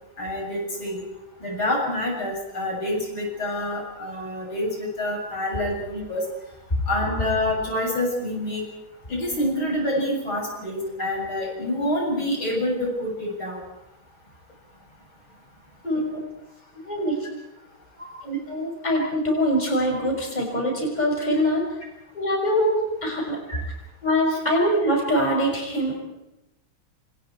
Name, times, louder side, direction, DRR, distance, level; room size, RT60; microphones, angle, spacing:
voice 1, 0.2-1.0 1.4-6.2 6.9-8.6 9.1-13.6 23.5-23.6 24.3-24.4, left 1 dB, 75° left, -1 dB, 8.4 m, -27 dB
voice 2, 15.8-16.2 16.8-17.1 18.0-21.6 22.1-23.4 24.0-26.0, equal, 20° left, 0 dB, 6.1 m, -23 dB
28.0 x 27.0 x 4.7 m, 0.92 s
omnidirectional pair, 2.3 m